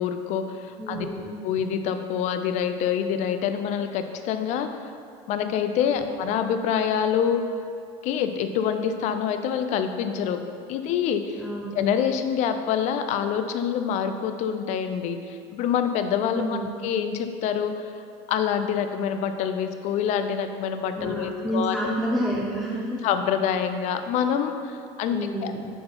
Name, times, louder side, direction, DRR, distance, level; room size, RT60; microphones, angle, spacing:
voice 1, 0.0-1.1 1.4-4.7 5.3-7.4 8.0-10.4 10.7-11.4 11.7-17.8 18.3-22.0 23.0-25.5, left 8 dB, 55° left, 8 dB, 0.6 m, -26 dB
voice 2, 0.8-1.4 5.9-6.0 11.4-11.8 16.3-16.7 21.0-23.0 25.1-25.7, equal, 5° left, -5 dB, 0.7 m, -29 dB
9.3 x 3.9 x 3.9 m, 2.4 s
supercardioid pair, 110°, 14 cm